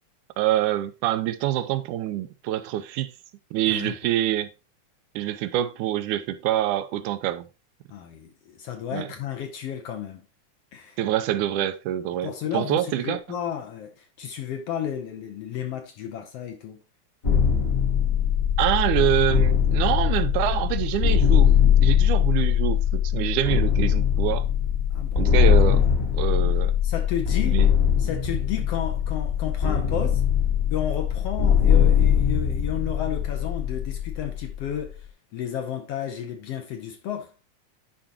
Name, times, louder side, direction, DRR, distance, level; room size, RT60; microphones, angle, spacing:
voice 1, 0.4-3.1 3.5-4.5 5.2-7.5 8.9-9.1 11.0-13.2 18.6-24.5 25.2-25.9 26.1-26.7 27.5-27.7, right 13 dB, 85° right, 2.2 m, -26 dB
voice 2, 3.7-4.0 7.9-10.2 10.7-11.0 12.2-16.8 24.9-25.6 26.4-26.5 26.8-27.6 28.0-30.2 30.7-37.3, left 9 dB, 70° left, 1.7 m, -32 dB
sound 1, 17.2-34.9, left 8 dB, 40° left, 1.3 m, -21 dB
11.0 x 5.1 x 2.9 m
omnidirectional pair, 3.5 m